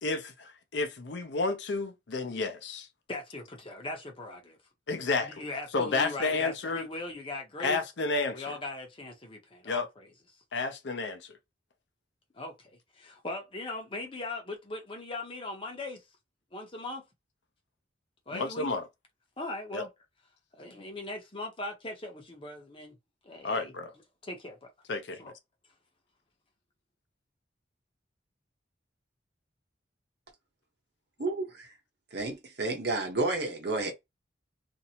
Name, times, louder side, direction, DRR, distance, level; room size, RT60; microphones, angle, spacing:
voice 1, 0.0-2.9 4.9-5.5 5.7-6.9 7.6-8.5 9.6-9.9 10.5-11.4 18.3-18.8 19.7-19.9 23.4-23.9 24.9-25.3, left 3 dB, 70° left, 0.6 m, -31 dB
voice 2, 3.1-4.6 5.2-7.8 8.3-10.1 12.3-16.0 16.5-17.0 18.3-18.7 19.4-19.9 20.5-22.9 23.2-23.7 24.2-24.7 25.2-25.3, left 2 dB, 30° left, 0.7 m, -39 dB
voice 3, 31.2-31.7 32.1-33.9, right 2 dB, 60° right, 0.9 m, -31 dB
2.6 x 2.1 x 2.8 m
head